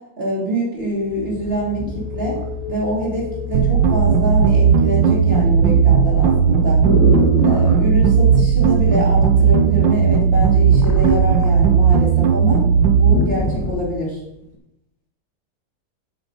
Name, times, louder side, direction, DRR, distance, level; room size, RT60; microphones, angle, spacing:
voice 1, 0.2-2.4 2.7-6.8 7.4-12.6 13.0-14.2, equal, 30° right, -5 dB, 3.7 m, -25 dB
sound 1, 0.8-0.9 1.4-2.9 3.6-3.8 4.1-4.6 4.9-7.8 8.9-9.4 9.7-12.0 12.3-12.4 12.8-13.9 14.5-14.6, left 1 dB, 10° left, 1.8 m, -25 dB
sound 2, 0.9-12.4, left 5 dB, 55° left, 3.1 m, -35 dB
sound 3, 3.5-13.1, right 7 dB, 85° right, 1.5 m, -15 dB
9.9 x 8.7 x 5.1 m, 0.82 s
omnidirectional pair, 1.9 m